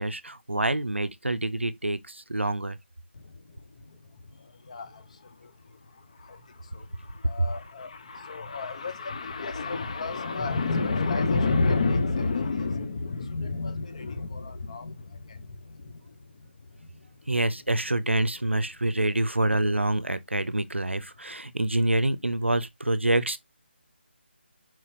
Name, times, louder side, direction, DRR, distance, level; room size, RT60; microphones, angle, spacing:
voice 1, 0.0-2.8 7.4-7.5 17.3-23.4, right 2 dB, 90° right, 0.6 m, -26 dB
voice 2, 3.1-17.1, left 3 dB, 35° left, 0.7 m, -31 dB
4.5 x 4.0 x 2.9 m
figure-of-eight pair, 155°, 6 cm